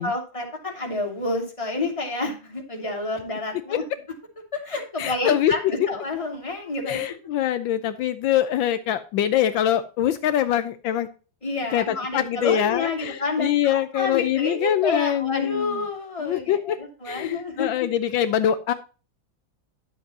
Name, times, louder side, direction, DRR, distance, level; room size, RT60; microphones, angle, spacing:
voice 1, 0.0-3.8 4.5-5.6 5.9-7.0 11.4-17.9, left 3 dB, 15° left, 0 dB, 2.4 m, -29 dB
voice 2, 5.0-5.5 6.9-11.1 11.7-15.8 16.2-16.8 17.0-18.7, left 10 dB, 80° left, 10 dB, 1.4 m, -24 dB
11.0 x 7.3 x 2.8 m, 0.35 s
omnidirectional pair, 2.1 m